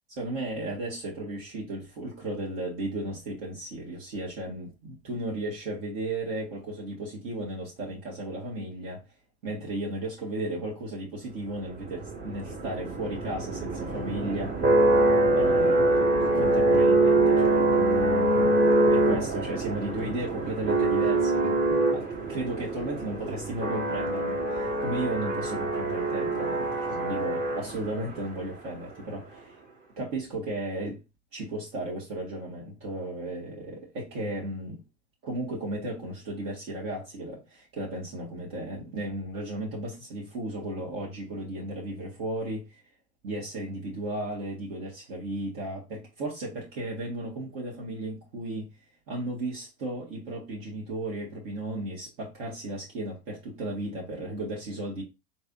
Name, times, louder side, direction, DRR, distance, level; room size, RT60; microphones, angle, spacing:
voice 1, 0.2-9.0 9.4-14.5 15.3-16.0 16.3-18.6 18.9-29.6 30.0-31.0 31.3-34.8 35.2-42.8 43.2-48.7 49.1-55.0, right 1 dB, 55° right, 1.6 m, -35 dB
sound 1, 11.8-28.0, right 2 dB, 35° right, 1.8 m, -24 dB
4.2 x 3.2 x 2.5 m
hypercardioid pair, 85°, 34 cm